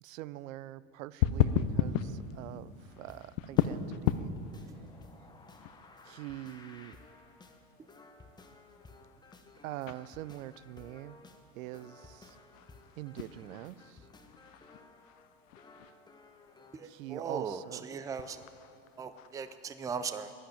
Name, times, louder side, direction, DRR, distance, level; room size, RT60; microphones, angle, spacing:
voice 1, 0.0-4.3 6.0-7.0 9.6-11.2 11.5-12.4 13.0-14.1 16.8-17.8, right 15 dB, 90° right, 19 dB, 0.5 m, -44 dB
sound 1, 1.2-19.7, left 10 dB, 75° left, 0.8 m, -37 dB
sound 2, 3.1-16.9, left 3 dB, 10° left, 0.9 m, -56 dB
voice 2, 16.7-18.4 19.0-20.3, right 6 dB, 10° right, 11 dB, 0.4 m, -38 dB
11.0 x 10.5 x 8.9 m, 2.6 s
supercardioid pair, 120°, 39 cm